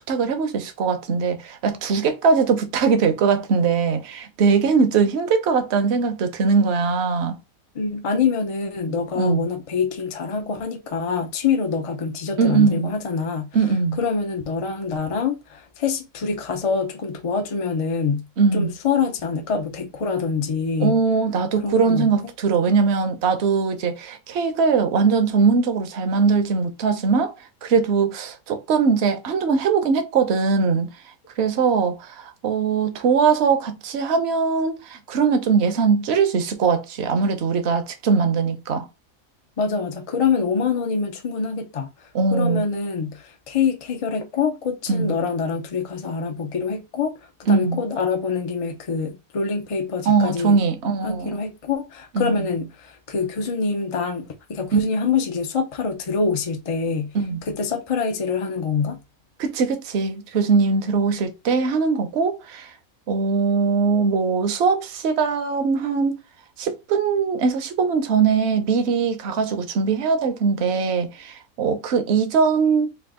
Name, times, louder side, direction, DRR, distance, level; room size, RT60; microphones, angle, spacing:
voice 1, 0.1-7.4 9.1-9.5 12.4-12.9 13.5-14.0 18.4-18.7 20.8-27.3 27.6-30.9 31.4-38.9 42.1-42.7 44.9-45.1 47.5-47.9 50.1-51.3 52.1-52.5 54.7-54.8 57.1-57.4 59.4-62.7 63.1-66.2 66.6-72.9, right 5 dB, 55° right, 0.9 m, -21 dB
voice 2, 7.7-13.5 14.0-18.3 18.5-21.0 21.6-22.1 39.6-41.9 42.3-47.1 47.4-50.6 51.0-57.1 57.5-59.0, left 5 dB, 45° left, 0.4 m, -25 dB
3.5 x 2.5 x 3.6 m
omnidirectional pair, 1.6 m